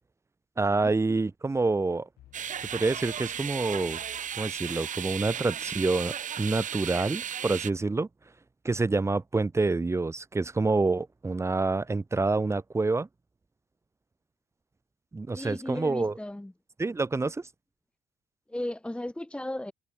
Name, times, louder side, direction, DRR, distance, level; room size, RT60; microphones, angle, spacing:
voice 1, 0.6-2.1 2.6-4.0 4.4-8.1 8.6-13.1 15.1-16.1 16.8-17.5, right 3 dB, 15° right, 1.3 m, -27 dB
sound 1, 2.2-5.1, left 15 dB, 75° left, 7.8 m, -57 dB
sound 2, 2.3-7.7, right 9 dB, 50° right, 4.5 m, -35 dB
voice 2, 15.3-16.5 18.5-19.7, left 1 dB, 5° left, 2.0 m, -35 dB
cardioid pair, 110°, 17 cm